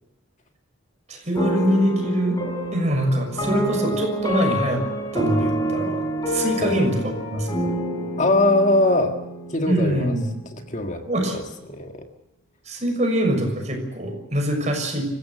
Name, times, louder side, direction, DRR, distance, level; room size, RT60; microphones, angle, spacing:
voice 1, 1.1-2.4 2.7-4.8 5.1-7.6 9.7-10.3 11.1-11.4 12.7-15.1, equal, 35° right, 3 dB, 6.5 m, -24 dB
sound 1, 1.4-10.5, right 1 dB, 20° left, 5.0 m, -27 dB
voice 2, 8.2-9.2 9.5-10.2 10.5-11.0 11.3-12.1, left 2 dB, 35° left, 5 dB, 1.8 m, -21 dB
26.5 x 16.0 x 7.7 m, 0.93 s
head